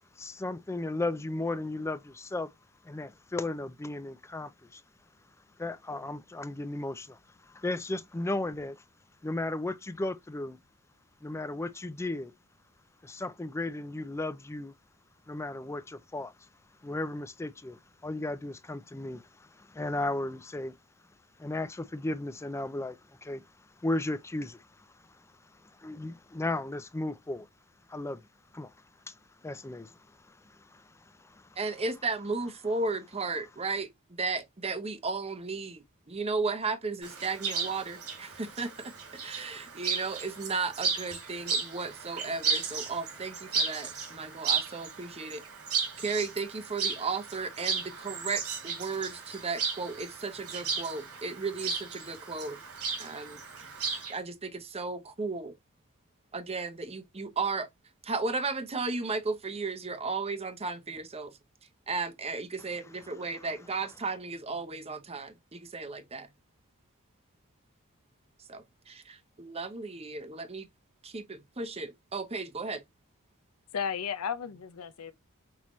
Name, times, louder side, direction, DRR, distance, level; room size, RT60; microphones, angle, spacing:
voice 1, 0.2-2.5 2.8-4.8 5.6-8.8 9.2-10.6 11.2-12.3 13.0-14.7 15.3-16.3 16.8-20.7 21.4-23.4 23.8-24.9 25.8-27.5 27.9-28.2 28.5-28.7 29.1-29.2 29.4-31.5 63.4-63.5, left 2 dB, 10° left, 0.4 m, -35 dB
voice 2, 31.6-38.9 39.2-45.4 46.0-52.6 53.0-53.4 54.1-55.5 56.3-57.7 58.0-61.3 61.9-66.3 68.5-70.7 71.0-72.8, right 4 dB, 25° right, 0.8 m, -35 dB
Chirp tweet, 37.0-54.1, right 5 dB, 85° right, 2.5 m, -35 dB
voice 3, 73.7-75.1, left 7 dB, 75° left, 0.6 m, -34 dB
6.1 x 2.8 x 3.0 m
head